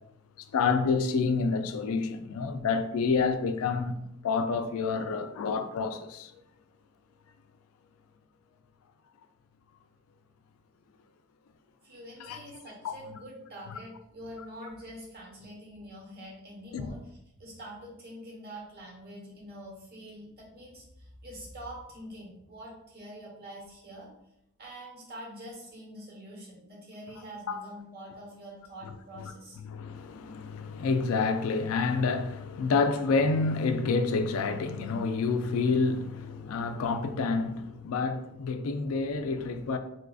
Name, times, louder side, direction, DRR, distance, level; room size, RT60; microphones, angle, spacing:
voice 1, 0.4-4.0 4.2-6.4 12.2-12.9 13.7-13.8 16.7-16.9 27.5-27.6 28.8-39.8, left 4 dB, 80° left, 0.3 m, -29 dB
voice 2, 11.8-17.0 17.4-24.1 24.6-29.6, equal, 50° right, 1.0 m, -45 dB
4.1 x 2.5 x 2.3 m
head